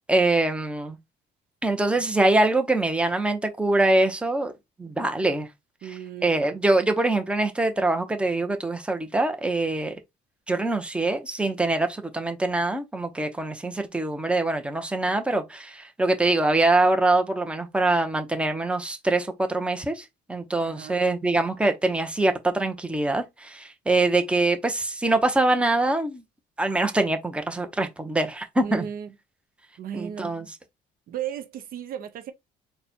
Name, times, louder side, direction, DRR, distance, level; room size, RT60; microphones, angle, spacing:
voice 1, 0.1-1.0 1.6-4.5 4.8-5.5 5.8-10.0 10.5-26.2 26.6-28.9 29.9-30.5, right 2 dB, 5° right, 0.8 m, -24 dB
voice 2, 5.8-6.3 20.6-21.0 28.6-29.1 29.8-30.4 31.1-32.3, right 9 dB, 60° right, 0.6 m, -35 dB
4.1 x 2.3 x 4.2 m
cardioid pair, 110°, 17 cm